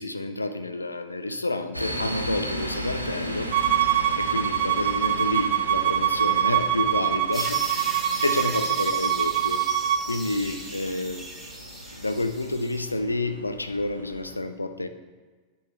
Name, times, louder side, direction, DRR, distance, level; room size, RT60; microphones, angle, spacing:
voice 1, 0.0-3.5 4.1-9.6 10.0-11.3 11.9-14.9, left 2 dB, 80° left, 9 dB, 0.5 m, -29 dB
Train stop on the station (Warszawa Stadion), 1.7-14.3, equal, 90° right, 0.8 m, -36 dB
Bowed string instrument, 3.5-10.0, right 11 dB, 45° right, 0.5 m, -24 dB
sound 1, 7.3-12.9, right 1 dB, ahead, 1.9 m, -38 dB
10.5 x 7.0 x 3.1 m, 1.4 s
figure-of-eight pair, 90°, 0 cm